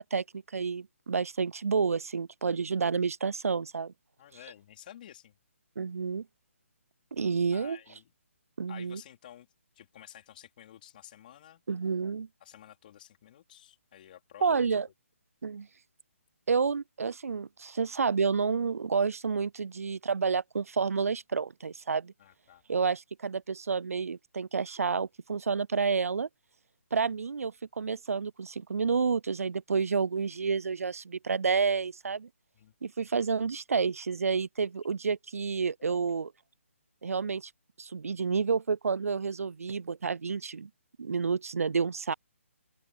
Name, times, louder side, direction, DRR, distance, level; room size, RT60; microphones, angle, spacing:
voice 1, 0.0-3.9 5.8-6.3 7.1-7.8 8.6-9.0 11.7-12.3 14.4-14.9 15.4-15.7 16.5-22.1 22.7-26.3 26.9-32.3 32.8-36.3 37.0-37.5 37.8-40.7 41.0-42.1, right 5 dB, 85° right, 0.4 m, -29 dB
voice 2, 4.2-5.3 7.5-8.1 8.7-9.5 9.7-11.6 12.4-14.7 22.2-22.6 32.5-32.7 35.9-36.2, left 11 dB, 40° left, 4.1 m, -52 dB
open air
hypercardioid pair, 155°, 8 cm